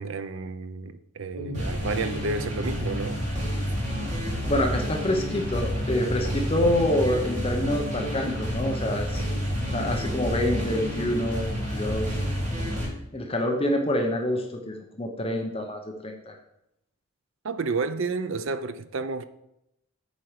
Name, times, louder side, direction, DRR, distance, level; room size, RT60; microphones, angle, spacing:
voice 1, 0.0-3.3 17.4-19.2, right 3 dB, 60° right, 0.6 m, -31 dB
sound 1, 1.3-12.9, equal, 35° right, 3.0 m, -29 dB
voice 2, 4.5-9.2 9.7-12.1 12.8-16.4, left 1 dB, 25° left, 0.8 m, -27 dB
8.3 x 4.5 x 6.5 m
head